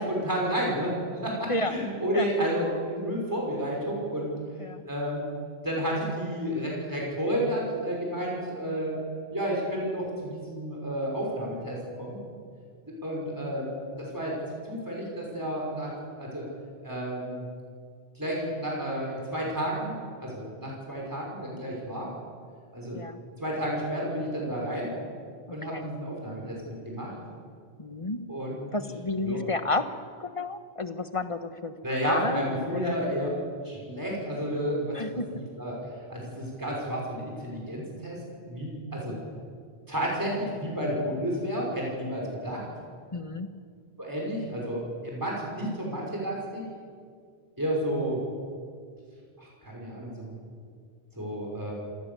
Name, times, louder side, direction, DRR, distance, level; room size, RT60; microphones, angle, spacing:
voice 1, 0.0-4.3 4.9-5.3 5.6-9.0 9.3-12.2 12.9-13.7 14.0-14.4 14.6-16.5 16.8-17.5 18.2-19.9 20.2-22.1 22.7-23.0 23.4-24.9 25.5-26.6 26.9-27.1 28.3-28.8 29.2-29.4 31.8-33.3 33.6-35.8 36.1-38.2 38.5-39.2 39.9-42.6 44.0-46.6 47.6-48.2 49.4-50.3 51.2-51.7, equal, 15° right, -3 dB, 5.5 m, -31 dB
voice 2, 27.8-28.2 28.7-29.8 30.2-31.7 32.0-33.0 34.9-35.3 39.1-39.4 43.1-43.5, left 2 dB, 30° left, 9 dB, 1.2 m, -31 dB
26.0 x 17.5 x 7.0 m, 2.1 s
omnidirectional pair, 1.1 m